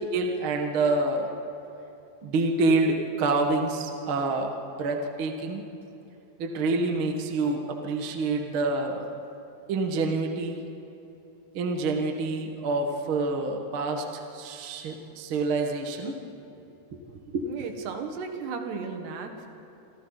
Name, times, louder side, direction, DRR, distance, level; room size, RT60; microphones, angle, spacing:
voice 1, 0.1-1.3 2.2-5.6 6.4-9.0 9.7-10.6 11.5-16.2 16.9-17.0 17.3-17.5, right 3 dB, 55° right, 3 dB, 1.5 m, -27 dB
voice 2, 17.4-19.5, right 5 dB, 75° right, 4 dB, 3.7 m, -35 dB
27.0 x 26.5 x 4.1 m, 2.9 s
omnidirectional pair, 4.8 m